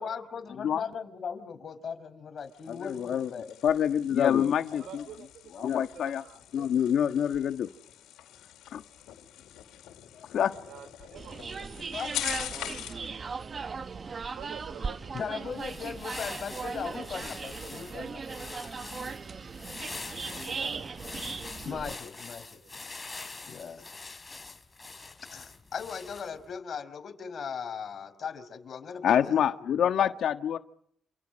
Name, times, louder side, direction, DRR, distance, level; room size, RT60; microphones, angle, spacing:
voice 1, 0.0-3.5 4.7-4.9 11.9-12.1 15.1-18.4 21.6-22.6 23.5-23.9 25.3-29.4 29.7-30.1, left 6 dB, 50° left, 5.2 m, -38 dB
sound 1, 2.4-13.1, left 12 dB, 85° left, 4.8 m, -43 dB
voice 2, 2.7-3.3 3.6-5.0 5.6-6.2 6.5-7.7 8.7-8.8 10.3-10.5 29.0-30.6, left 9 dB, 70° left, 1.5 m, -26 dB
voice 3, 4.8-6.7 7.7-7.8 8.9-9.0 10.6-11.4 14.4-15.5 19.9-20.0 20.3-21.3 22.5-22.7, right 8 dB, 75° right, 3.9 m, -48 dB
sound 2, 11.1-21.9, right 5 dB, 40° right, 1.2 m, -38 dB
sound 3, 15.4-26.5, left 3 dB, 25° left, 4.1 m, -44 dB
28.5 x 28.0 x 6.5 m
cardioid pair, 90°, 0 cm